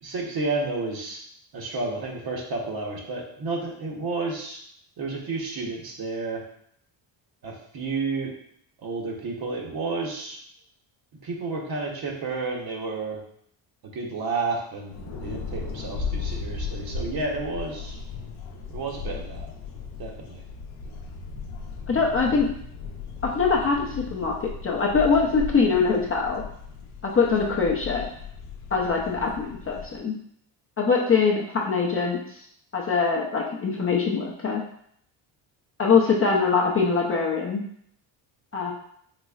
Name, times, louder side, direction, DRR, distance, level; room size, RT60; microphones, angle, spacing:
voice 1, 0.0-1.2 1.5-4.6 5.0-6.4 7.4-8.3 8.8-10.4 11.2-13.2 13.9-18.0 18.7-19.5 20.0-20.4, right 3 dB, 50° right, 0 dB, 1.0 m, -31 dB
sound 1, 14.9-30.0, left 5 dB, 70° left, 0.7 m, -36 dB
voice 2, 21.9-22.5 23.2-24.3 24.6-26.4 27.0-28.1 28.7-30.1 30.8-32.2 32.7-34.6 35.8-37.6 38.5-38.7, left 5 dB, 30° left, -2 dB, 0.5 m, -23 dB
4.1 x 3.0 x 2.3 m, 0.67 s
cardioid pair, 105°, 48 cm